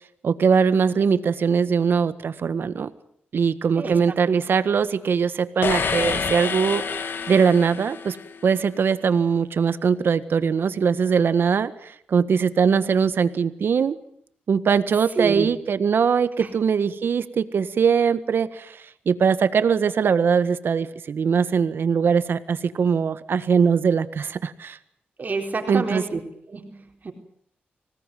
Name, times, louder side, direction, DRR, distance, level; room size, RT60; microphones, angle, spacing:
voice 1, 0.2-2.9 3.3-8.2 8.4-14.0 14.5-24.8 25.7-26.0, right 6 dB, 70° right, 12 dB, 1.6 m, -21 dB
sound 1, 5.6-8.5, left 5 dB, 65° left, 2.0 m, -28 dB
voice 2, 15.2-15.5 16.4-16.5 25.2-26.2 26.5-27.1, right 4 dB, 50° right, 2 dB, 4.1 m, -28 dB
26.0 x 18.5 x 9.3 m, 0.70 s
cardioid pair, 80°, 4 cm